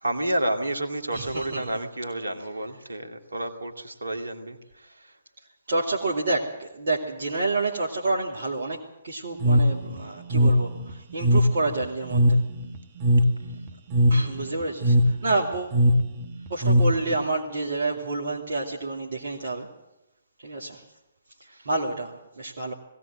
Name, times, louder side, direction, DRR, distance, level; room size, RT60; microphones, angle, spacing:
voice 1, 0.0-5.1 21.5-21.7, right 1 dB, 75° right, 5 dB, 2.3 m, -30 dB
voice 2, 1.1-1.7 5.7-12.4 14.1-15.8 16.5-19.7 20.4-20.8 21.7-22.7, right 3 dB, 55° right, -3 dB, 2.5 m, -29 dB
sound 1, 9.4-17.2, equal, 30° right, 1.8 m, -21 dB
20.0 x 17.5 x 7.7 m, 0.93 s
figure-of-eight pair, 130°, 0 cm